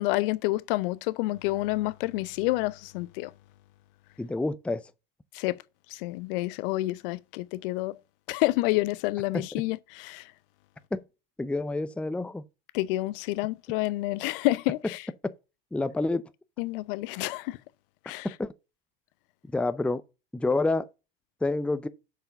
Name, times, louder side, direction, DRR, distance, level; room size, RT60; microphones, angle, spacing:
voice 1, 0.0-3.3 5.3-5.6 5.9-8.0 8.3-10.2 12.7-15.0 16.6-17.6 18.1-18.3, left 19 dB, 65° left, 0.6 m, -29 dB
voice 2, 4.2-4.8 9.3-9.6 10.9-11.0 11.4-12.4 15.7-16.2 18.4-18.5 19.5-20.0 20.3-20.9 21.4-21.9, left 2 dB, 5° left, 0.5 m, -28 dB
6.7 x 4.8 x 6.5 m
hypercardioid pair, 90°, 29 cm